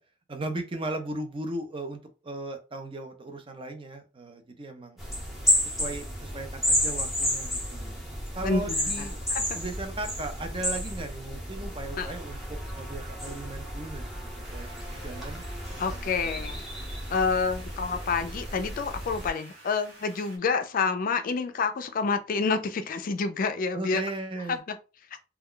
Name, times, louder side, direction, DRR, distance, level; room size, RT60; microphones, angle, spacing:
voice 1, 0.3-5.0 5.6-8.0 8.3-9.2 9.6-14.1 14.5-15.4 15.7-16.5 23.7-24.6, right 2 dB, 30° right, 0.5 m, -37 dB
sound 1, 5.0-19.3, equal, ahead, 0.8 m, -32 dB
voice 2, 8.4-9.1 9.3-9.4 12.0-12.1 15.8-16.6 17.1-24.0, left 4 dB, 50° left, 0.4 m, -28 dB
sound 2, 14.4-20.4, right 1 dB, 60° right, 1.1 m, -51 dB
2.3 x 2.2 x 3.6 m
head